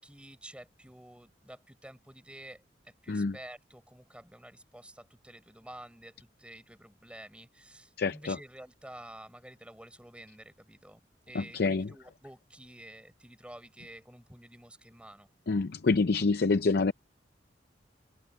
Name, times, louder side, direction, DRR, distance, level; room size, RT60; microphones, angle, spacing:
voice 1, 0.0-11.0 11.3-15.3, right 1 dB, 5° right, 4.0 m, -50 dB
voice 2, 8.0-8.4 11.3-11.9 15.5-16.9, left 3 dB, 60° left, 0.6 m, -27 dB
head